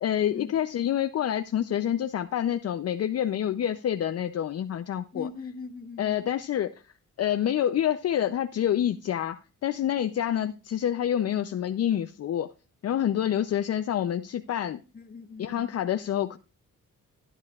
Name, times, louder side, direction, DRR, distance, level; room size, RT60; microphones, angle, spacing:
voice 1, 0.0-5.3 6.0-6.7 7.2-12.5 12.8-14.8 15.4-16.4, left 10 dB, 55° left, 0.5 m, -27 dB
voice 2, 5.1-6.2 14.9-15.7, left 4 dB, 30° left, 1.0 m, -40 dB
14.0 x 9.9 x 2.4 m
cardioid pair, 125°, 31 cm